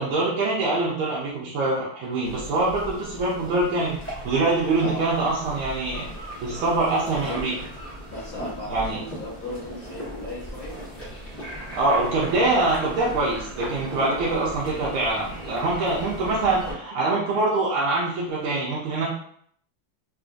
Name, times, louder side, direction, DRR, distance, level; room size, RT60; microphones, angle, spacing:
voice 1, 0.0-7.5 8.7-9.0 11.7-19.1, right 2 dB, 80° right, -6 dB, 1.5 m, -24 dB
sound 1, 2.2-16.7, equal, 15° left, 0.4 m, -38 dB
voice 2, 7.0-7.5 8.1-10.8 14.2-14.4, left 1 dB, 50° left, -8 dB, 1.2 m, -36 dB
3.6 x 2.5 x 2.5 m, 0.64 s
omnidirectional pair, 2.3 m